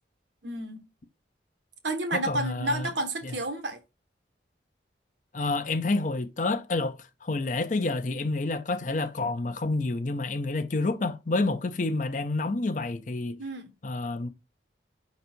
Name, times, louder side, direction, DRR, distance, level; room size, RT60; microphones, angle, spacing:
voice 1, 0.4-0.9 1.8-3.8 13.4-13.7, right 1 dB, 80° right, 1.3 m, -31 dB
voice 2, 2.1-2.9 3.2-3.3 5.3-13.4 13.8-14.3, left 2 dB, 45° left, 0.6 m, -29 dB
5.3 x 4.0 x 4.4 m
head